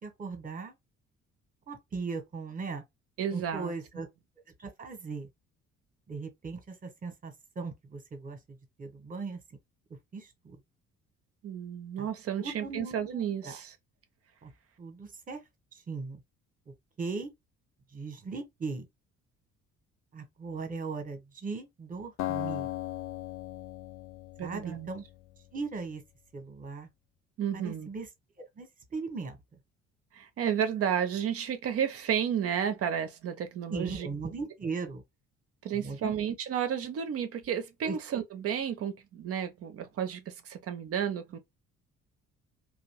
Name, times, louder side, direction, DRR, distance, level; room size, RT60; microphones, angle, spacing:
voice 1, 0.0-0.7 1.7-2.8 3.3-4.1 4.6-5.3 6.1-8.4 8.8-9.4 10.1-10.6 12.0-12.1 12.4-13.6 14.4-14.5 14.8-15.4 15.9-16.2 17.0-17.3 17.9-18.9 20.1-22.7 24.4-25.0 25.5-26.0 26.3-26.9 27.5-28.1 28.6-29.4 33.7-35.0 35.7-36.1 37.8-38.0, right 4 dB, 20° right, 0.9 m, -38 dB
voice 2, 3.2-3.7 11.4-13.8 24.4-24.9 27.4-27.9 30.1-34.1 35.6-41.4, right 8 dB, 35° right, 0.5 m, -32 dB
Acoustic guitar, 22.2-25.4, left 15 dB, 45° left, 0.4 m, -37 dB
2.5 x 2.0 x 2.9 m
figure-of-eight pair, 45°, 41 cm